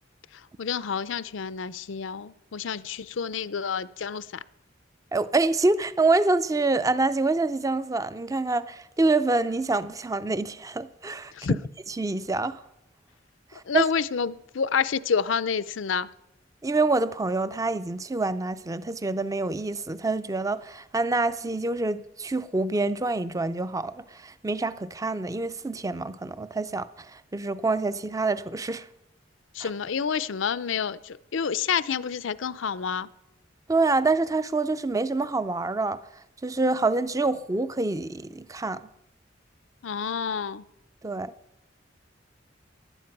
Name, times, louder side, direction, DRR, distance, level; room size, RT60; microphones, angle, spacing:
voice 1, 0.3-4.3 11.3-11.6 13.5-16.1 29.5-33.1 39.8-40.6, left 6 dB, 75° left, 0.5 m, -28 dB
voice 2, 5.1-11.6 12.0-12.6 13.5-13.8 16.6-28.9 29.6-29.7 33.7-36.0 36.4-38.8 41.0-41.3, right 3 dB, 15° right, 0.5 m, -26 dB
16.0 x 11.5 x 6.0 m
head